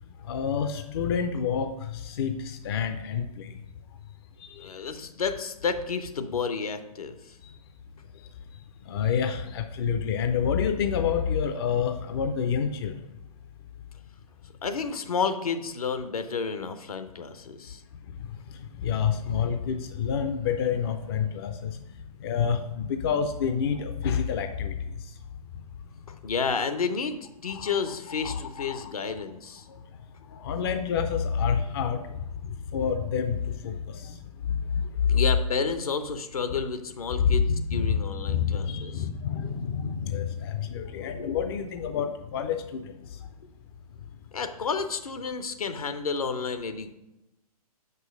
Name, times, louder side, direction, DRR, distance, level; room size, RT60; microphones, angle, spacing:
voice 1, 0.3-3.5 4.5-4.7 8.9-13.0 18.8-21.8 22.2-24.8 27.5-27.7 28.2-28.9 30.3-32.0 32.7-34.2 34.5-34.8 35.1-35.2 37.2-38.0 38.2-42.9, left 7 dB, 40° left, 8 dB, 0.4 m, -28 dB
voice 2, 4.6-7.4 14.6-17.8 26.1-29.7 32.5-32.6 35.1-39.1 44.3-46.9, left 5 dB, 70° left, 9 dB, 0.7 m, -31 dB
5.7 x 5.4 x 5.1 m, 0.94 s
figure-of-eight pair, 120°, 20 cm